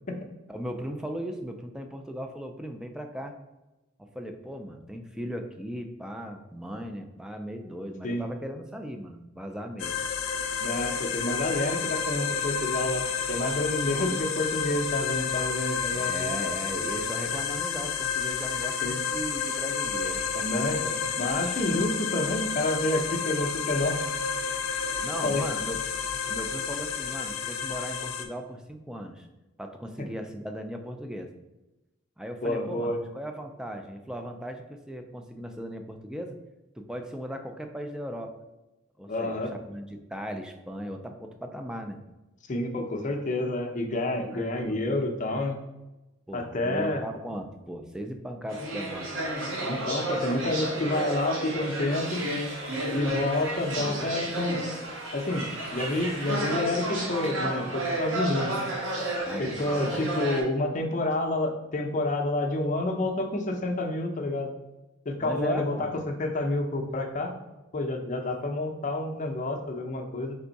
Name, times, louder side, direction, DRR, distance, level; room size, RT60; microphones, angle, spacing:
voice 1, 0.5-3.3 4.0-10.0 15.9-20.6 25.0-25.8 26.3-29.3 29.6-31.3 32.2-36.4 36.8-38.4 39.0-42.0 44.3-44.8 46.3-49.1 59.2-59.6 65.2-65.9, equal, 5° right, 5 dB, 0.3 m, -37 dB
sound 1, 9.8-28.3, left 6 dB, 90° left, 0.5 m, -30 dB
voice 2, 10.6-16.3 18.8-19.0 20.4-24.0 25.2-25.4 32.4-33.0 39.1-39.5 42.5-45.6 46.3-47.0 49.6-52.3 52.9-54.7 55.1-55.5 55.7-58.6 59.4-64.5 65.1-65.9 66.2-67.3 67.7-70.4, left 2 dB, 40° left, 3 dB, 0.6 m, -29 dB
sound 2, 48.5-60.4, right 1 dB, 75° right, 0.9 m, -32 dB
3.5 x 3.4 x 4.0 m, 1.0 s
head